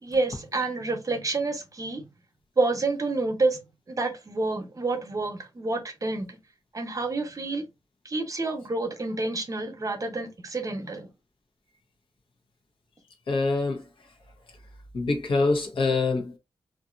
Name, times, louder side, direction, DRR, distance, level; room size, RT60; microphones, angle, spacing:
voice 1, 0.0-2.0 2.6-3.6 3.9-6.4 6.7-7.6 8.0-11.1, right 3 dB, 40° right, 0.7 m, -28 dB
voice 2, 13.3-13.9 14.9-16.4, left 3 dB, 75° left, 0.9 m, -25 dB
2.7 x 2.5 x 2.4 m
cardioid pair, 60°, 9 cm